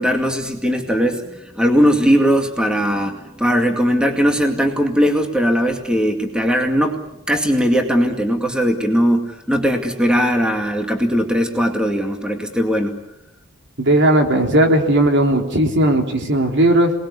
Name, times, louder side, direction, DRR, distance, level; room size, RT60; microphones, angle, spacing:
voice 1, 0.0-7.0 7.3-13.0, equal, 5° right, 4 dB, 2.3 m, -19 dB
voice 2, 13.8-16.9, right 1 dB, 55° right, 3 dB, 3.5 m, -16 dB
28.5 x 20.5 x 8.4 m, 0.82 s
head